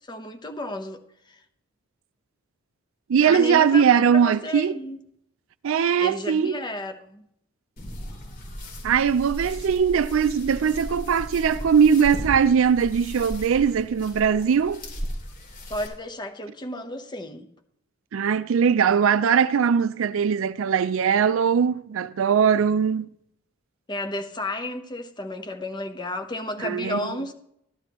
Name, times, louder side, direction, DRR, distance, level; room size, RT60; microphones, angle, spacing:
voice 1, 0.1-1.0 1.3-1.4 3.2-3.8 4.1-5.0 6.0-7.3 15.7-17.5 23.9-27.3, left 1 dB, 20° left, 0.9 m, -32 dB
voice 2, 3.1-4.8 5.6-6.5 8.8-14.8 18.1-23.1 26.6-27.0, right 7 dB, 65° right, 0.4 m, -20 dB
sound 1, 7.8-15.9, equal, 45° left, 2.6 m, -36 dB
13.5 x 11.5 x 3.0 m
head